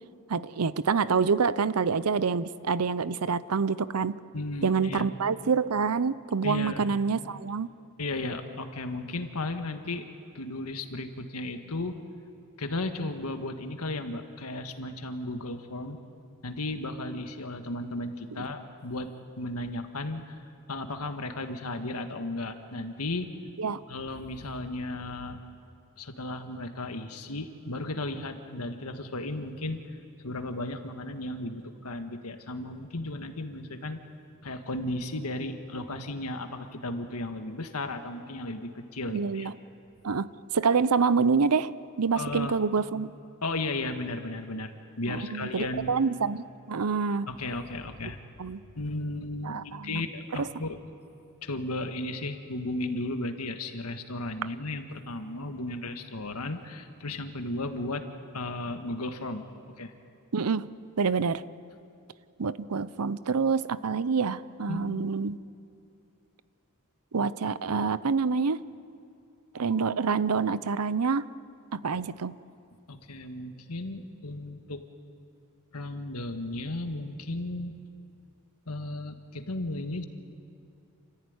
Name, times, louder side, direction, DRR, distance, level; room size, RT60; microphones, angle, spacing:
voice 1, 0.3-4.1 4.6-7.7 18.4-18.5 23.6-23.8 39.1-39.5 40.0-40.3 40.5-41.7 42.0-43.1 45.1-47.3 48.4-48.6 49.4-50.0 50.3-50.5 60.3-60.7 61.0-61.4 62.4-65.4 67.1-68.6 69.5-71.3 71.7-72.4, right 5 dB, 80° right, 16 dB, 0.7 m, -27 dB
voice 2, 4.3-5.1 6.4-6.9 8.0-10.1 10.3-12.0 12.6-16.0 16.4-20.4 20.7-23.3 23.9-25.4 26.0-29.8 30.2-34.0 34.4-39.5 42.1-42.6 43.4-45.9 47.3-48.2 48.7-50.8 51.4-58.0 58.3-59.4 59.8-59.9 64.7-65.1 71.9-72.0 72.9-74.8 75.7-77.7 78.7-80.0, left 2 dB, 80° left, 7 dB, 1.7 m, -35 dB
28.0 x 15.0 x 9.6 m, 2.6 s
head